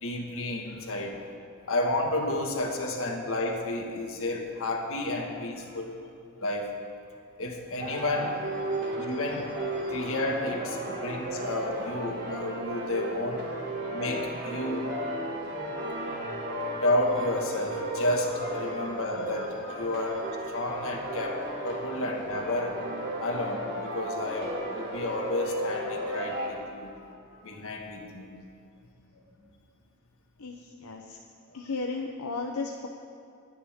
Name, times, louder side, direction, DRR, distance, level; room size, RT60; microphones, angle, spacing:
voice 1, 0.0-1.2 1.7-5.9 6.4-6.7 7.4-8.4 8.9-9.6 9.8-13.4 13.9-15.0 16.7-22.8 23.2-28.3, left 1 dB, 65° left, 1 dB, 1.9 m, -31 dB
sound 1, 7.8-26.5, right 1 dB, 50° right, 3.2 m, -35 dB
voice 2, 30.4-31.2 31.5-32.9, left 3 dB, 85° left, 1 dB, 0.8 m, -35 dB
24.5 x 9.9 x 3.7 m, 2.5 s
head